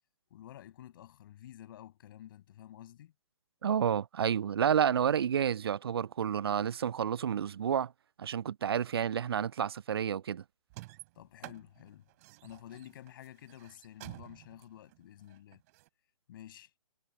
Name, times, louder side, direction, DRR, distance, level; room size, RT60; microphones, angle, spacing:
voice 1, 0.3-3.1 11.2-12.1 12.4-15.6 16.3-16.7, left 12 dB, 35° left, 7.3 m, -51 dB
voice 2, 3.6-7.9 8.2-10.4, right 8 dB, 40° right, 0.6 m, -30 dB
sound 1, 10.7-15.9, right 21 dB, 25° right, 2.8 m, -51 dB
figure-of-eight pair, 130°, 19 cm